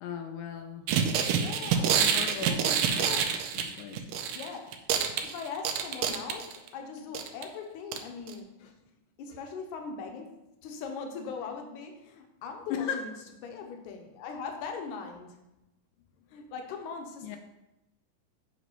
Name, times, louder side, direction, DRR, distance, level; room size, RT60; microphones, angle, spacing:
voice 1, 0.0-0.9 1.9-2.6 3.6-4.0 8.6-8.7 9.3-9.4 12.7-13.0 17.2-17.4, left 8 dB, 85° left, 4 dB, 2.3 m, -37 dB
sound 1, 0.9-4.5 4.7-6.7 7.1-7.4 7.9-8.0 8.3-8.4, right 7 dB, 85° right, 2.2 m, -27 dB
voice 2, 1.4-2.0 2.5-3.3 4.3-4.7 5.2-8.6 9.2-13.1 13.4-15.4 16.3-17.4, left 5 dB, 70° left, 3 dB, 2.1 m, -40 dB
8.0 x 3.2 x 5.4 m, 0.94 s
omnidirectional pair, 3.9 m